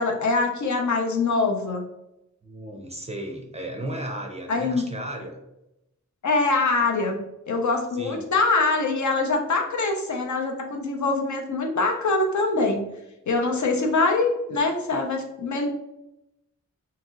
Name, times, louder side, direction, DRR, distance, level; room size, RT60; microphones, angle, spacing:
voice 1, 0.0-1.8 4.5-4.8 6.2-7.2 7.5-12.8 13.3-15.7, left 3 dB, 65° left, 3 dB, 0.5 m, -23 dB
voice 2, 2.4-5.4 7.9-8.2, right 1 dB, 20° right, 1 dB, 0.4 m, -34 dB
2.8 x 2.7 x 2.4 m, 0.87 s
wide cardioid pair, 100°, 31 cm